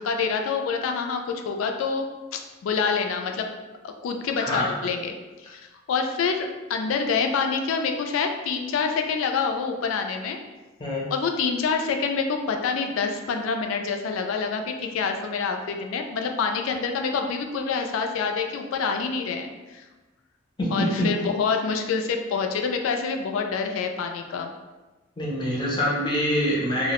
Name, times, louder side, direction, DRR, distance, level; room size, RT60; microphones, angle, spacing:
voice 1, 0.0-2.1 2.3-3.5 3.8-5.2 5.4-5.6 5.9-10.4 11.1-19.8 20.7-24.5, left 5 dB, 90° left, 5 dB, 0.3 m, -27 dB
voice 2, 4.4-4.7 10.8-11.1 20.6-21.1 25.2-26.9, equal, 20° left, -4 dB, 0.5 m, -25 dB
2.3 x 2.0 x 2.8 m, 1.2 s
head